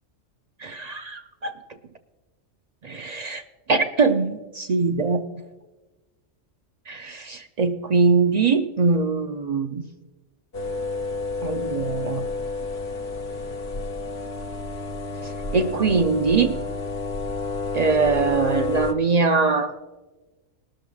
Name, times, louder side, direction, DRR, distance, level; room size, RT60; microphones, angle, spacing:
voice 1, 0.6-1.5 2.8-3.4 3.7-5.2 6.9-9.9 11.4-12.2 15.2-16.6 17.7-19.7, right 4 dB, 55° right, 8 dB, 0.4 m, -22 dB
sound 1, 10.5-18.9, left 3 dB, 55° left, 1.2 m, -30 dB
20.5 x 12.5 x 2.3 m, 1.2 s
omnidirectional pair, 1.3 m